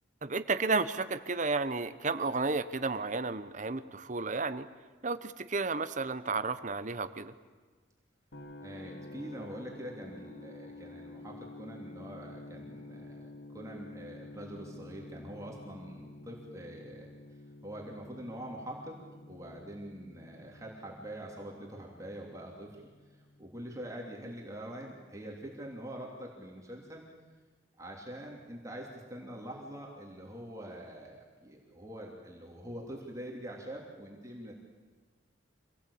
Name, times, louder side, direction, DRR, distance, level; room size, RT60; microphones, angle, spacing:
voice 1, 0.2-4.7 5.0-7.3, right 3 dB, 40° right, 12 dB, 1.0 m, -32 dB
sound 1, 8.3-24.2, left 2 dB, 65° left, 1.9 m, -50 dB
voice 2, 8.6-17.1 17.6-18.9 19.3-22.8 23.1-27.0 27.8-34.5, right 1 dB, 15° right, -1 dB, 3.2 m, -44 dB
26.0 x 18.5 x 8.7 m, 1.4 s
head